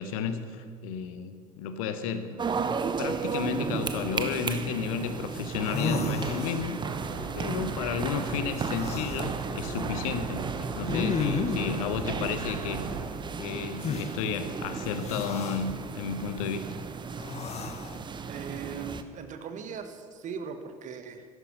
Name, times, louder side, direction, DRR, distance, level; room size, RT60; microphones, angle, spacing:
voice 1, 0.0-2.4 3.0-7.0 7.4-12.8 13.4-16.7, left 6 dB, 65° left, 10 dB, 1.0 m, -32 dB
sound 1, 2.4-19.0, right 5 dB, 25° right, 0.9 m, -34 dB
sound 2, 5.3-5.4 5.6-6.9 8.7-9.3 10.9-11.7 13.8-14.1 15.0-15.6 17.2-18.0, left 6 dB, 35° left, 1.1 m, -33 dB
sound 3, 6.8-13.1, right 4 dB, 70° right, 1.8 m, -39 dB
voice 2, 18.3-21.3, right 6 dB, 40° right, 8 dB, 1.4 m, -39 dB
13.0 x 11.5 x 6.4 m, 2.1 s
figure-of-eight pair, 65°, 19 cm